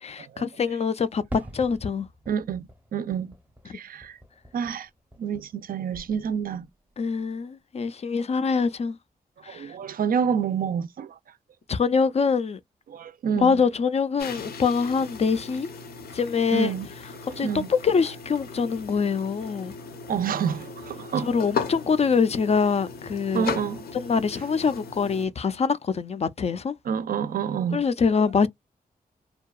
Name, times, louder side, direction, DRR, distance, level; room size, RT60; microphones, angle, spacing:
voice 1, 0.0-1.2 1.5-2.1 7.0-9.0 9.4-9.7 11.7-12.6 13.4-15.7 16.1-16.7 17.4-19.7 21.2-23.5 23.9-26.7 27.7-28.5, left 5 dB, 45° left, 0.4 m, -24 dB
Fireworks, 1.3-5.7 5.9-6.7, equal, 10° right, 0.6 m, -43 dB
voice 2, 2.3-3.3 3.7-4.2 4.5-4.9 5.2-6.7 9.5-11.2 12.9-13.6 16.5-16.9 17.3-17.7 20.1-21.4 23.3-23.8 26.8-27.8, right 7 dB, 70° right, 0.4 m, -28 dB
sound 1, 14.2-25.3, left 5 dB, 80° left, 0.6 m, -37 dB
2.7 x 2.2 x 2.2 m
cardioid pair, 85°, 16 cm